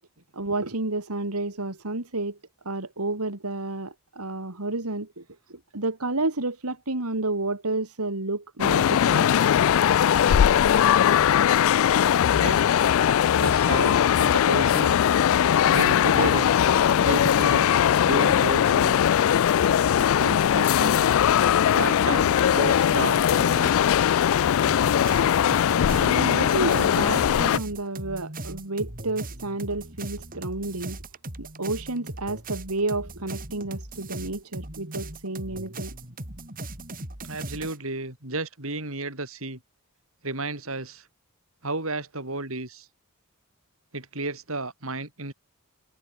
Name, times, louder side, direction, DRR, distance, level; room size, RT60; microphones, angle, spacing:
voice 1, 0.3-2.4 2.6-5.2 5.5-9.3 26.0-31.0 31.4-35.9, right 2 dB, 85° right, 2.8 m, -30 dB
sound 1, 8.6-27.6, left 9 dB, 65° left, 0.3 m, -20 dB
voice 2, 12.3-12.8 13.4-15.0 15.7-16.5 17.0-17.7 18.0-19.2 20.0-21.0 21.7-23.7 37.3-39.6 40.2-41.0 41.6-42.9 43.9-45.3, right 2 dB, 65° right, 6.2 m, -32 dB
sound 2, 24.7-37.8, right 2 dB, 40° right, 4.7 m, -38 dB
head